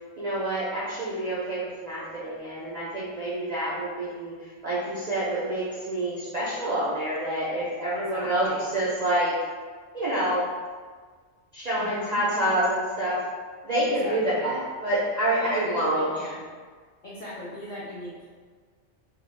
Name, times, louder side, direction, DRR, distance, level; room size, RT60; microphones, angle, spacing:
voice 1, 0.2-4.3 4.6-9.3 9.9-10.5 11.5-13.2 13.6-16.1, right 1 dB, 65° right, -8 dB, 0.4 m, -27 dB
voice 2, 8.1-8.6 11.8-12.2 13.8-14.5 15.4-16.4 17.0-18.1, left 1 dB, 65° left, -9 dB, 0.5 m, -39 dB
2.3 x 2.0 x 3.0 m, 1.5 s
omnidirectional pair, 1.3 m